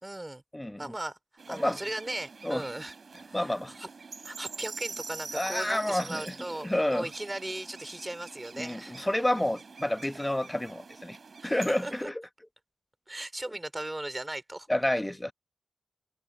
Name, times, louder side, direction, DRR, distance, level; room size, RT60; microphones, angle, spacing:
voice 1, 0.0-0.4 0.8-1.2 1.5-2.9 3.3-3.9 4.2-9.0 11.4-11.6 11.8-12.1 13.1-14.7, right 1 dB, 15° right, 3.8 m, -37 dB
sound 1, 1.4-12.1, right 4 dB, 55° right, 3.2 m, -45 dB
voice 2, 3.3-3.7 5.3-6.3 6.6-7.1 8.6-11.2 11.4-12.1 14.7-15.3, left 1 dB, 10° left, 1.0 m, -29 dB
cardioid pair, 80°, 0 cm